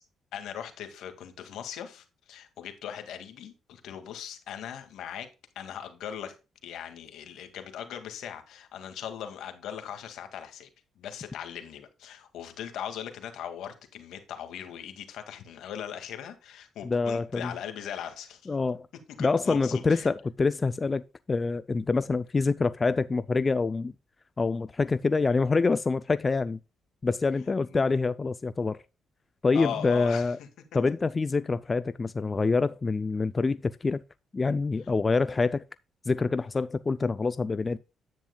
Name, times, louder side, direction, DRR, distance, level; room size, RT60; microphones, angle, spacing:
voice 1, 0.3-5.3 5.6-6.3 6.6-10.7 11.0-18.5 19.1-20.1 27.7-27.8 29.5-30.5, left 9 dB, 80° left, 2.0 m, -39 dB
voice 2, 16.8-17.5 18.5-18.9 19.2-21.0 21.3-23.9 24.4-26.6 27.0-28.8 29.4-30.4 30.7-34.0 34.3-35.6 36.1-37.8, left 4 dB, 30° left, 0.4 m, -26 dB
10.5 x 9.1 x 2.3 m
cardioid pair, 90°, 0 cm